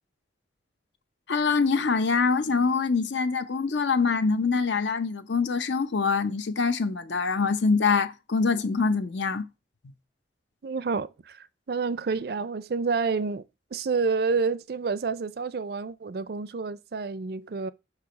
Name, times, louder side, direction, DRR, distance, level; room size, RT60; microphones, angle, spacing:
voice 1, 1.3-9.5, left 4 dB, 75° left, 0.7 m, -24 dB
voice 2, 10.6-13.4 13.7-17.7, right 4 dB, 55° right, 0.4 m, -29 dB
5.9 x 4.7 x 5.1 m
head